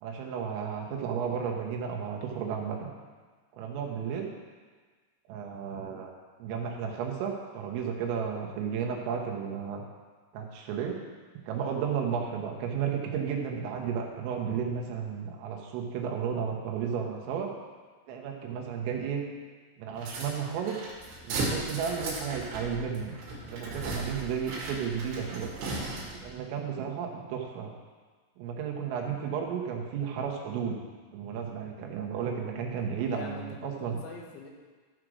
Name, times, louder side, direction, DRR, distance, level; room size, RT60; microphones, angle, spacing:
voice 1, 0.0-2.9 3.6-4.3 5.3-6.1 6.4-9.8 10.3-11.0 11.4-17.5 18.1-19.2 19.8-20.8 21.2-23.2 23.5-25.5 26.2-27.7 28.4-30.8 31.1-34.0, right 7 dB, 80° right, 1 dB, 3.8 m, -33 dB
sound 1, 20.0-26.3, right 2 dB, 65° right, 4.2 m, -36 dB
voice 2, 33.0-34.5, left 3 dB, 75° left, 1 dB, 3.3 m, -43 dB
14.0 x 5.1 x 6.3 m, 1.5 s
omnidirectional pair, 5.9 m